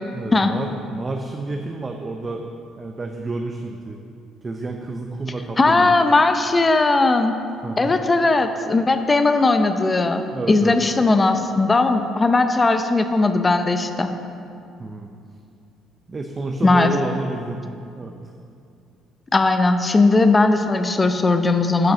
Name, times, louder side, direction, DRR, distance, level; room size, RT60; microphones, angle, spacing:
voice 1, 0.1-2.5 2.8-4.0 4.4-5.9 7.6-8.0 10.3-10.8 14.8-15.1 16.1-17.6 18.0-18.1, right 2 dB, 25° right, 3 dB, 0.6 m, -29 dB
voice 2, 5.6-7.3 7.8-14.1 16.6-16.9 19.3-21.9, left 3 dB, 20° left, 8 dB, 0.6 m, -18 dB
10.5 x 5.3 x 6.7 m, 2.5 s
cardioid pair, 115°, 0 cm